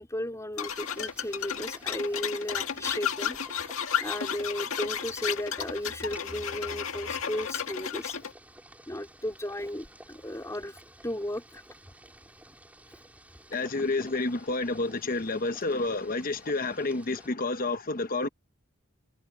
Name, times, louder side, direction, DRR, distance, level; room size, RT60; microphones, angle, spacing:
voice 1, 0.0-3.4 4.0-8.2 8.9-11.6, left 1 dB, 15° left, 3.8 m, -35 dB
sound 1, 0.6-8.3, left 8 dB, 70° left, 1.9 m, -33 dB
Boiling, 0.7-17.3, right 1 dB, 5° right, 5.9 m, -53 dB
voice 2, 13.5-18.3, left 3 dB, 40° left, 1.0 m, -29 dB
head